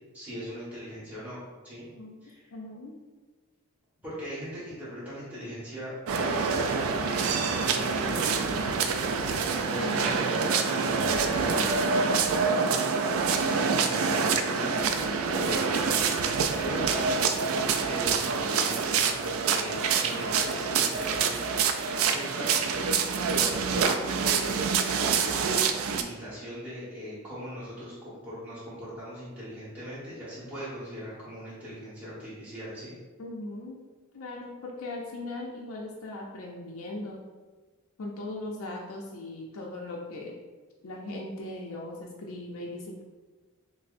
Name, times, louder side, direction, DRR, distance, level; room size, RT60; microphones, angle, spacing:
voice 1, 0.1-1.9 2.2-2.5 4.0-8.7 9.7-17.3 17.9-22.8 23.3-24.7 25.0-32.9, equal, 5° right, -11 dB, 1.2 m, -40 dB
voice 2, 1.9-2.2 2.5-2.9 9.8-10.2 33.2-33.8 34.1-37.2 38.0-40.4 40.8-43.0, left 2 dB, 70° left, -1 dB, 0.5 m, -38 dB
sound 1, 6.1-26.0, right 5 dB, 70° right, 0.3 m, -26 dB
5.7 x 2.0 x 2.5 m, 1.3 s
head